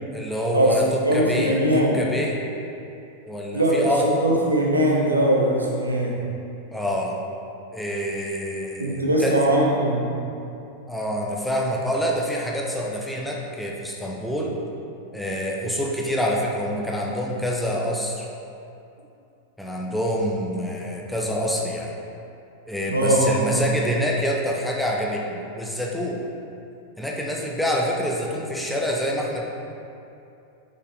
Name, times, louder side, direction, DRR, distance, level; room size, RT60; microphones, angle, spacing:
voice 1, 0.1-2.4 3.3-4.1 6.7-7.2 7.7-9.4 10.9-14.6 15.1-18.3 19.6-21.9 22.7-26.2 27.0-29.4, equal, 5° left, -2 dB, 0.8 m, -26 dB
voice 2, 1.0-2.0 3.5-6.2 8.8-10.1 22.9-23.6, right 1 dB, 80° right, -2 dB, 1.0 m, -21 dB
6.1 x 5.5 x 3.5 m, 2.7 s
figure-of-eight pair, 90°, 0 cm